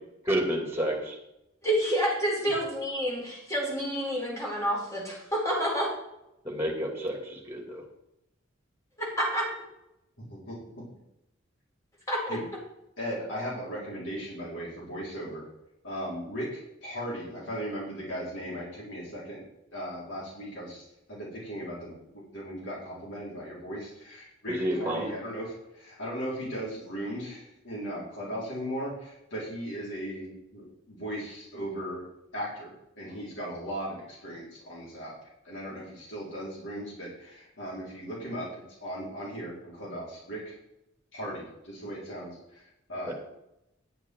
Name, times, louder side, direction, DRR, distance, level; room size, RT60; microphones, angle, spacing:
voice 1, 0.2-1.2 6.4-7.8 24.5-25.1 43.1-43.2, right 1 dB, 10° right, 0 dB, 2.7 m, -30 dB
voice 2, 1.6-5.9 9.0-9.5 12.1-12.4, equal, 15° left, -4 dB, 4.7 m, -28 dB
voice 3, 13.0-15.5 15.8-19.4 19.7-32.0 32.3-35.1 35.4-38.5 38.8-40.6 41.1-43.1, equal, 70° left, -5 dB, 4.1 m, -37 dB
10.5 x 8.7 x 4.7 m, 0.85 s
head